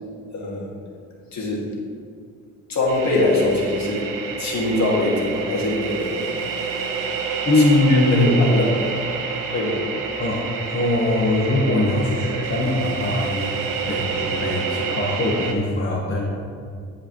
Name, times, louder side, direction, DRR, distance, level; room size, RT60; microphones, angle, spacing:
voice 1, 0.3-0.7 1.3-1.7 2.7-4.1 4.4-6.3 7.9-8.9 9.5-9.8, left 2 dB, 60° left, -3 dB, 2.1 m, -23 dB
sound 1, 2.9-15.5, right 5 dB, 85° right, 1.0 m, -28 dB
voice 2, 7.4-8.4 10.2-16.3, left 2 dB, 45° left, -4 dB, 1.4 m, -21 dB
14.0 x 4.9 x 3.1 m, 2.3 s
cardioid pair, 75°, 31 cm